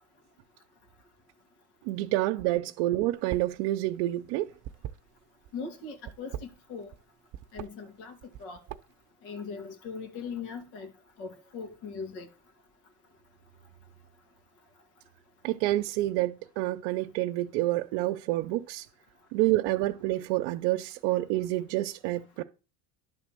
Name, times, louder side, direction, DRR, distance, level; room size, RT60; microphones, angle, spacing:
voice 1, 1.8-4.5 15.4-18.9 19.3-22.4, right 16 dB, 85° right, 0.8 m, -28 dB
sound 1, 3.2-3.6 3.9-5.5 6.0-7.0 7.3-7.7 8.2-9.0, right 11 dB, 40° right, 0.7 m, -40 dB
voice 2, 5.5-6.9 7.5-8.6 9.2-10.9 11.2-12.3, left 5 dB, 85° left, 2.4 m, -40 dB
11.0 x 3.9 x 7.6 m
cardioid pair, 120°, 49 cm